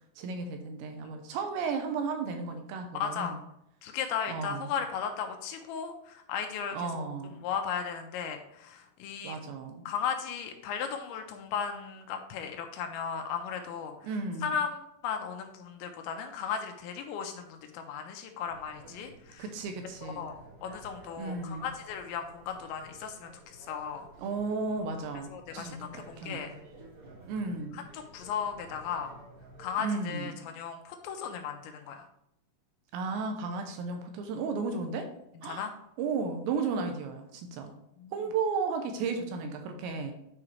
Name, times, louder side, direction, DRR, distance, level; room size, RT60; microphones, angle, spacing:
voice 1, 0.2-3.4 4.3-4.7 6.7-7.4 9.2-9.9 14.0-14.6 19.4-20.3 21.2-21.7 24.2-26.5 27.3-27.8 29.8-30.4 32.9-35.1 35.4-35.7 36.0-37.7 38.1-40.1, right 4 dB, 80° right, 5 dB, 2.8 m, -34 dB
voice 2, 3.0-3.3 3.8-7.1 7.4-9.4 9.9-14.1 14.4-19.5 20.0-20.3 20.6-24.1 25.3-26.5 27.9-29.1 29.6-32.1 35.5-35.7 38.0-38.1, left 7 dB, 85° left, 5 dB, 2.8 m, -36 dB
sound 1, 18.5-29.7, right 2 dB, 50° right, 3.4 m, -53 dB
9.8 x 4.8 x 3.2 m, 0.78 s
omnidirectional pair, 5.5 m